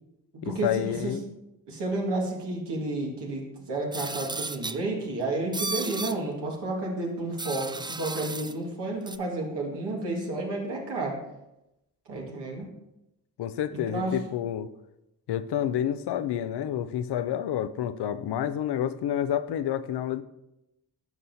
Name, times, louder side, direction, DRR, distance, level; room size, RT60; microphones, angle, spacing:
voice 1, 0.4-1.2 13.4-14.7 15.3-20.2, left 10 dB, 75° left, 14 dB, 0.5 m, -29 dB
voice 2, 1.7-11.2 12.1-12.7 13.7-14.1, right 2 dB, 85° right, -2 dB, 1.8 m, -31 dB
sound 1, 3.9-4.8 5.5-6.2 7.4-8.5 9.1-9.2, right 3 dB, 10° right, 0.4 m, -34 dB
12.0 x 5.5 x 2.7 m, 0.90 s
supercardioid pair, 45°, 40 cm